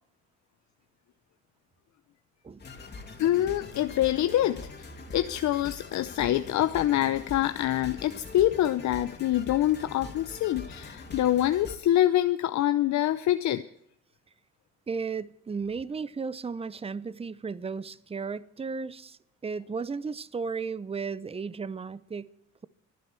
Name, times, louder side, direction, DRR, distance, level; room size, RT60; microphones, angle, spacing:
sound 1, 2.6-11.8, left 3 dB, 35° left, 2.7 m, -43 dB
voice 1, 3.2-13.6, left 13 dB, 70° left, 0.7 m, -25 dB
voice 2, 14.9-22.3, right 5 dB, 20° right, 0.7 m, -34 dB
23.0 x 10.0 x 4.5 m
cardioid pair, 90°, 30 cm